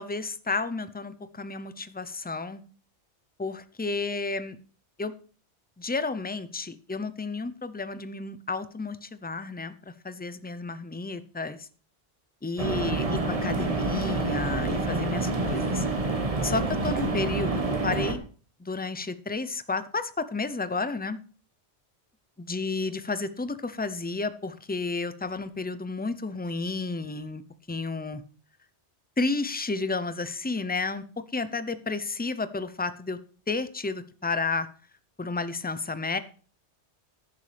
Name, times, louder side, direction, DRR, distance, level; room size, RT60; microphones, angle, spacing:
voice 1, 0.0-2.6 3.4-4.6 5.0-5.1 5.8-11.7 12.4-15.9 16.4-18.2 18.6-21.2 22.4-27.4 27.7-28.2 29.2-33.2 33.5-34.7 35.2-36.2, left 3 dB, 15° left, 12 dB, 0.3 m, -31 dB
sound 1, 12.6-18.1, right 2 dB, 30° right, 1.2 m, -27 dB
15.0 x 6.8 x 3.3 m, 0.40 s
omnidirectional pair, 1.2 m